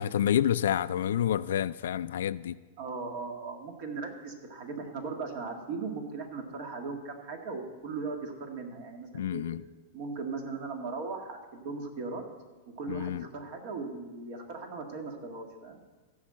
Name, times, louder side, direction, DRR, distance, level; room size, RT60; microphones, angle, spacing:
voice 1, 0.0-2.6 9.1-9.6 12.9-13.2, left 10 dB, 80° left, 15 dB, 0.4 m, -28 dB
voice 2, 2.8-9.4 9.9-12.2 12.8-15.8, right 4 dB, 50° right, 3 dB, 2.0 m, -38 dB
15.0 x 5.4 x 7.6 m, 1.3 s
supercardioid pair, 150°, 0 cm